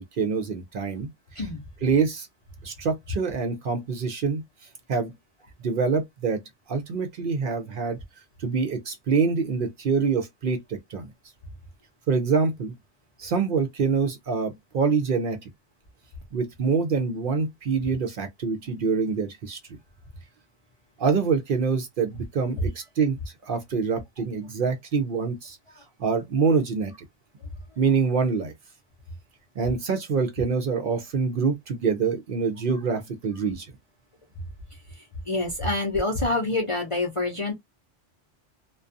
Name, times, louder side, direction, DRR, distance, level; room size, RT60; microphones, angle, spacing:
voice 1, 0.0-1.5 1.8-2.3 2.6-4.4 4.9-5.1 5.6-6.4 6.7-8.0 8.4-11.1 12.1-12.7 13.2-15.5 16.3-19.6 21.0-23.2 23.4-25.6 26.0-26.9 27.8-28.5 29.6-33.7, right 5 dB, 60° right, 0.6 m, -25 dB
voice 2, 35.3-37.5, left 2 dB, 40° left, 0.5 m, -26 dB
2.4 x 2.2 x 2.4 m
omnidirectional pair, 1.2 m